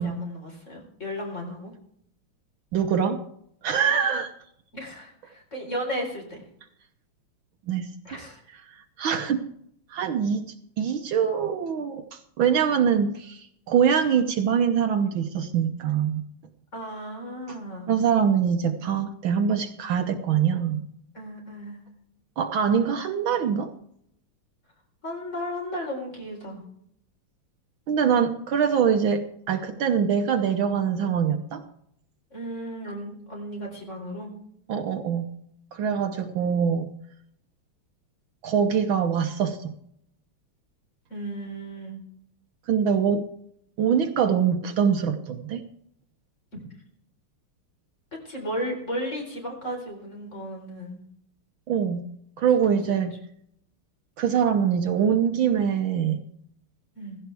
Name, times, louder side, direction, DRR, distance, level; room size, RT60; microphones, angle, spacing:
voice 1, 0.0-1.7 4.7-6.4 8.0-8.4 16.7-17.9 21.1-21.8 25.0-26.6 32.3-34.3 41.1-42.0 46.5-46.6 48.2-51.0 52.7-52.8 57.0-57.2, equal, 30° left, 0 dB, 4.5 m, -34 dB
voice 2, 2.7-3.2 3.6-4.3 7.7-8.2 8.5-9.4 9.9-16.2 17.5-17.6 17.9-20.8 22.4-23.7 27.9-31.6 34.7-35.3 35.7-36.9 38.4-39.7 42.7-43.3 43.8-45.6 51.7-52.0 52.4-53.2 54.2-56.2, right 7 dB, 70° right, 6 dB, 1.7 m, -24 dB
16.0 x 15.0 x 3.4 m, 0.69 s
omnidirectional pair, 2.4 m